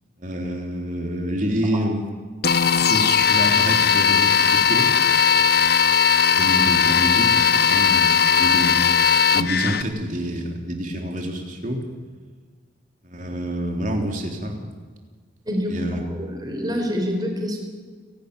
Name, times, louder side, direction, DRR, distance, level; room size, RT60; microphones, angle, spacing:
voice 1, 0.2-2.1 2.9-4.9 6.4-8.9 9.3-11.8 13.0-14.7 15.7-16.0, equal, 40° right, 2 dB, 3.7 m, -27 dB
sound 1, 2.4-9.8, left 6 dB, 55° left, 0.9 m, -18 dB
voice 2, 15.4-15.8 16.1-17.6, equal, 20° right, 2 dB, 4.5 m, -26 dB
30.0 x 12.0 x 9.9 m, 1.5 s
head